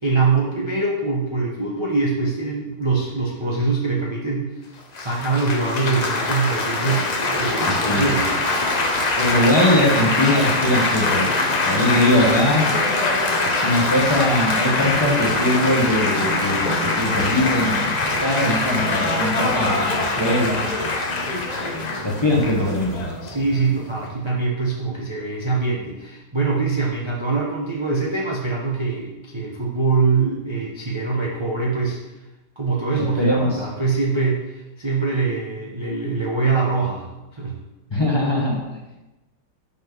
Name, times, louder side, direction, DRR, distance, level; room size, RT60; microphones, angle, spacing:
voice 1, 0.0-4.5 5.0-8.4 23.2-32.0 32.6-37.0 37.3-37.6, right 4 dB, 30° right, -3 dB, 0.5 m, -23 dB
Laughter / Applause / Chatter, 4.9-24.1, left 2 dB, 70° left, 0.4 m, -23 dB
voice 2, 7.6-8.1 9.1-11.3 11.7-12.8 13.4-20.6 22.0-23.1 33.2-33.5 37.9-38.6, left 1 dB, 20° left, -2 dB, 0.9 m, -21 dB
5.4 x 5.1 x 5.9 m, 1.0 s
omnidirectional pair, 2.0 m